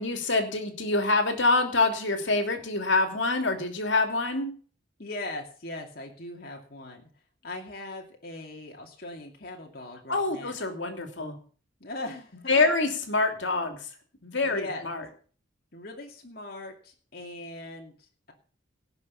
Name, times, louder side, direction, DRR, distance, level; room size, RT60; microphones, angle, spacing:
voice 1, 0.0-4.5 10.1-11.4 12.5-13.9 14.2-15.0, left 3 dB, 65° left, 6 dB, 2.9 m, -26 dB
voice 2, 5.0-7.1 7.4-10.5 11.8-12.8 14.4-14.9 15.7-18.3, left 2 dB, 50° left, 0 dB, 2.5 m, -40 dB
18.0 x 6.1 x 7.2 m, 0.41 s
head